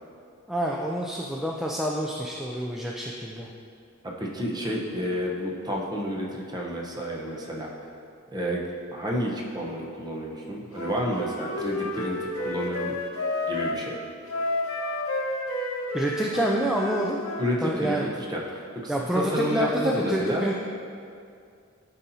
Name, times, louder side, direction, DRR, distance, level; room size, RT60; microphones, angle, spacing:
voice 1, 0.5-3.5 15.9-17.2 17.6-18.1 18.9-20.5, right 1 dB, ahead, -2 dB, 0.3 m, -27 dB
voice 2, 4.2-7.9 8.3-8.7 8.9-12.9 13.5-14.0 17.4-20.5, equal, 20° right, -2 dB, 0.8 m, -30 dB
Wind instrument woodwind instrument, 10.7-13.8 14.3-17.5, left 2 dB, 85° left, 0.8 m, -30 dB
12.5 x 4.2 x 2.7 m, 2.4 s
head